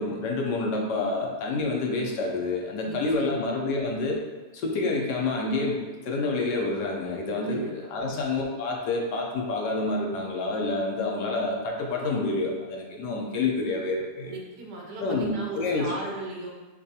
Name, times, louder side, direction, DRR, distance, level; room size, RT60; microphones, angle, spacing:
voice 1, 0.0-4.2 4.5-14.3 15.0-15.9, left 3 dB, 75° left, 0 dB, 1.3 m, -28 dB
voice 2, 2.8-3.4 7.4-7.7 8.0-8.2 14.2-16.5, right 2 dB, 70° right, -2 dB, 1.4 m, -37 dB
6.8 x 2.5 x 2.8 m, 1.2 s
omnidirectional pair, 1.8 m